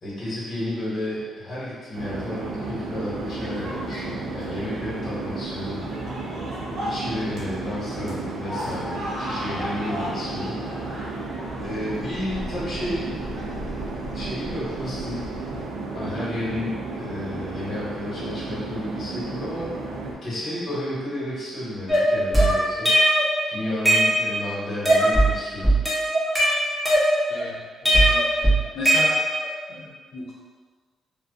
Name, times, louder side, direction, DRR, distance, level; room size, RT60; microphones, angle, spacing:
voice 1, 0.0-5.8 6.8-10.7 11.6-13.1 13.4-15.3 15.9-19.7 20.2-23.0 23.5-25.7, left 1 dB, 35° left, -10 dB, 1.3 m, -32 dB
sound 1, 1.9-20.1, right 3 dB, 80° right, 0.3 m, -33 dB
sound 2, 3.0-15.6, equal, 60° right, 0.8 m, -37 dB
sound 3, 21.9-23.3 23.6-24.5 24.8-25.3 25.6-27.4 27.8-29.5, right 1 dB, ahead, 0.8 m, -19 dB
voice 2, 27.3-29.2 29.7-30.3, left 2 dB, 65° left, -5 dB, 0.7 m, -35 dB
2.4 x 2.2 x 2.3 m, 1.5 s
cardioid pair, 90°, 0 cm